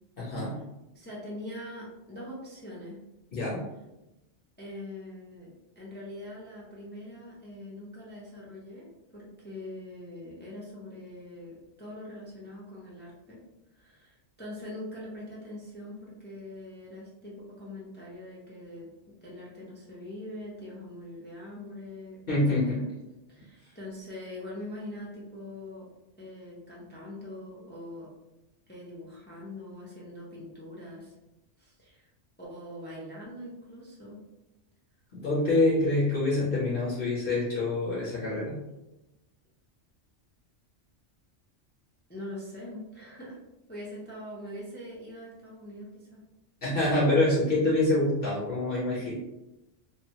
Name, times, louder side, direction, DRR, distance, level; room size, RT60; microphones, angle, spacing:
voice 1, 0.2-0.6 3.3-3.6 22.3-22.8 35.1-38.5 46.6-49.1, left 2 dB, 50° left, -7 dB, 1.1 m, -26 dB
voice 2, 0.9-3.0 4.6-8.9 9.1-13.4 13.7-18.9 19.2-22.2 22.7-22.8 23.3-25.9 26.2-28.1 28.7-31.1 31.6-32.1 32.4-34.2 42.1-43.4 43.7-46.2, left 1 dB, 15° left, -6 dB, 0.4 m, -43 dB
3.0 x 2.2 x 2.8 m, 0.95 s
omnidirectional pair, 1.2 m